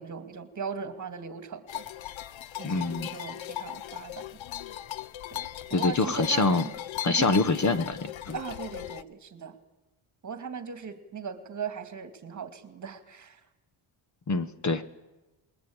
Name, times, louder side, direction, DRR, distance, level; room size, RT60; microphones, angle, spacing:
voice 1, 0.0-1.9 2.6-4.4 5.3-6.7 7.0-7.4 8.3-9.6 10.2-13.4, right 6 dB, 35° right, 10 dB, 2.4 m, -38 dB
sound 1, 1.7-9.0, left 13 dB, 65° left, 0.9 m, -38 dB
voice 2, 2.6-3.1 5.7-6.6 7.0-8.3 14.3-14.8, left 3 dB, 35° left, 13 dB, 1.1 m, -25 dB
28.0 x 21.5 x 8.8 m, 1.0 s
wide cardioid pair, 170°, 50 cm